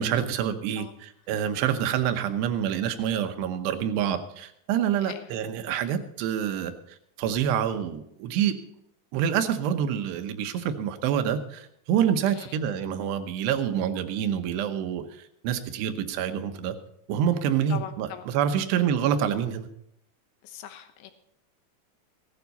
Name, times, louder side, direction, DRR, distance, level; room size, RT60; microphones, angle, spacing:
voice 1, 0.0-6.7 7.2-8.5 9.1-16.8 17.1-19.7, right 9 dB, 75° right, 8 dB, 3.0 m, -27 dB
voice 2, 5.0-5.3 12.3-12.5 17.7-18.2 20.4-21.1, left 10 dB, 85° left, 7 dB, 3.4 m, -40 dB
16.5 x 12.0 x 4.1 m, 0.75 s
omnidirectional pair, 5.1 m